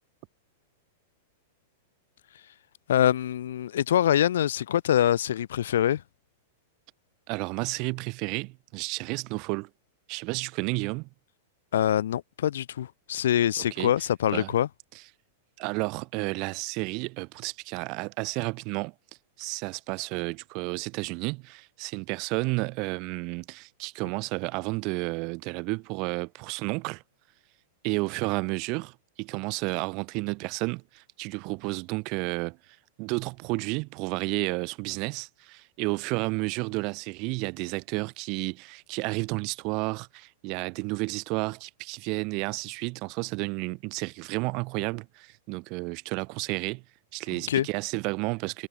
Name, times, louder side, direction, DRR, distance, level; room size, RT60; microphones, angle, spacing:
voice 1, 2.9-6.0 11.7-14.7 47.5-47.7, left 11 dB, 80° left, 1.5 m, -24 dB
voice 2, 7.3-9.7 10.1-11.1 13.6-13.9 14.3-14.5 14.9-15.0 15.6-18.9 19.4-27.0 27.8-32.6 33.0-46.8 47.1-48.7, right 28 dB, 40° right, 5.5 m, -31 dB
supercardioid pair, 160°, 0 cm